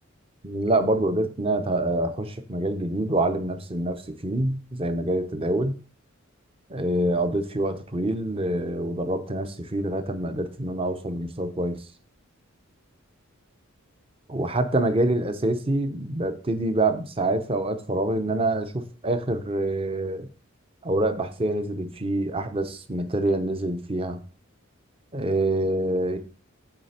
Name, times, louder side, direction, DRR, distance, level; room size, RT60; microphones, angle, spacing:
voice 1, 0.4-5.8 6.7-11.8 14.3-20.3 20.8-24.2 25.1-26.2, right 1 dB, 25° right, 9 dB, 0.7 m, -26 dB
8.5 x 3.4 x 6.5 m, 0.39 s
head